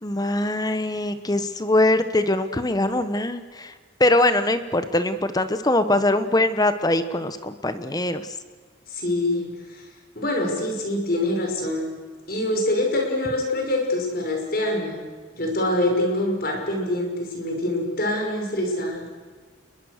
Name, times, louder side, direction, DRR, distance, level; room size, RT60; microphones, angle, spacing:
voice 1, 0.0-8.3, left 1 dB, 20° left, 11 dB, 1.1 m, -22 dB
voice 2, 8.9-9.8 10.2-12.0 12.3-15.0 15.3-19.1, left 1 dB, 50° left, 2 dB, 5.8 m, -25 dB
28.5 x 22.0 x 6.6 m, 1.5 s
head